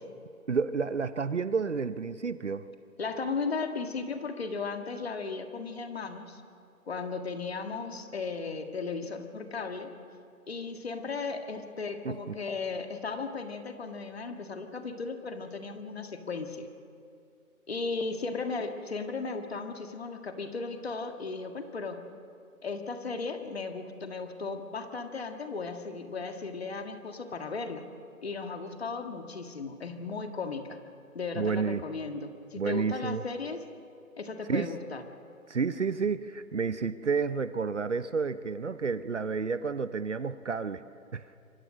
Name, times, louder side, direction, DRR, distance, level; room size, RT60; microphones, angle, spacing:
voice 1, 0.5-2.7 12.0-12.3 31.4-31.8 32.6-33.2 34.5-34.7 35.5-40.8 41.1-41.2, right 5 dB, 55° right, 14 dB, 0.9 m, -30 dB
voice 2, 3.0-6.4 6.9-10.0 10.5-16.7 17.7-22.0 22.6-27.9 28.2-30.8 31.1-33.6 34.2-35.0, left 4 dB, 45° left, 6 dB, 1.9 m, -36 dB
27.0 x 23.5 x 6.4 m, 2.5 s
figure-of-eight pair, 165°, 44 cm